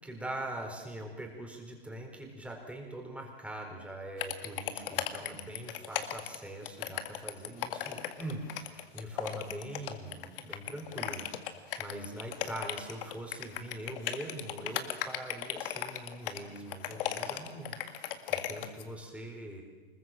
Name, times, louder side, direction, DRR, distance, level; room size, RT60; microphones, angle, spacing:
voice 1, 0.0-19.6, right 1 dB, 5° right, 2 dB, 4.2 m, -42 dB
sound 1, 4.2-18.8, left 11 dB, 60° left, 2.0 m, -36 dB
25.0 x 21.0 x 7.6 m, 1.4 s
hypercardioid pair, 120°, 31 cm